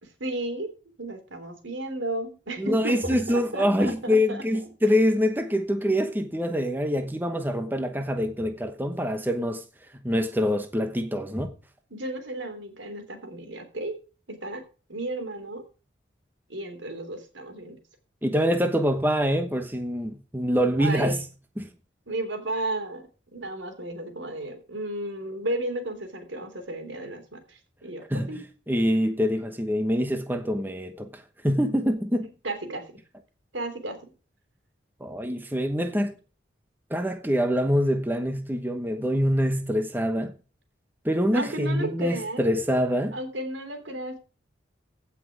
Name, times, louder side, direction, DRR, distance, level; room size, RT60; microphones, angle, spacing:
voice 1, 0.0-0.7 1.0-4.4 11.9-14.0 14.3-14.6 14.9-15.6 16.5-17.8 20.8-21.2 22.1-23.0 23.3-28.4 32.4-32.8 33.5-34.0 41.3-42.4 43.1-44.2, right 1 dB, 90° right, 3.4 m, -33 dB
voice 2, 2.6-9.6 9.9-11.5 18.2-21.2 21.6-21.7 28.1-28.3 28.7-32.3 35.0-36.1 36.9-40.4 41.0-43.2, equal, 10° right, 1.0 m, -25 dB
16.0 x 5.9 x 4.8 m
head